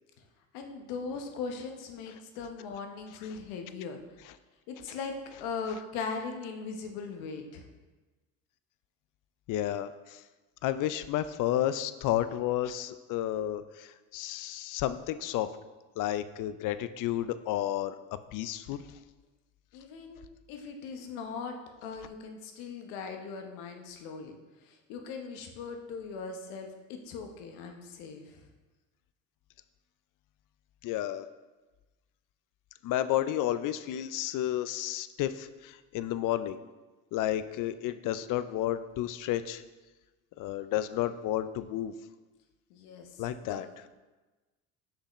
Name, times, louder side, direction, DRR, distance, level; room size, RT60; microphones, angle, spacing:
voice 1, 0.5-4.0 4.7-5.1 5.4-7.7 19.7-20.2 20.5-21.5 21.8-24.3 24.6-28.4 42.7-43.2 43.5-43.7, left 5 dB, 75° left, 4 dB, 1.0 m, -39 dB
voice 2, 9.5-9.9 10.6-15.5 16.0-17.9 18.3-18.8 30.8-31.3 32.8-36.6 37.1-39.6 40.4-41.9 43.2-43.7, left 12 dB, 50° left, 13 dB, 0.5 m, -31 dB
6.8 x 5.5 x 3.1 m, 1.2 s
hypercardioid pair, 75°, 41 cm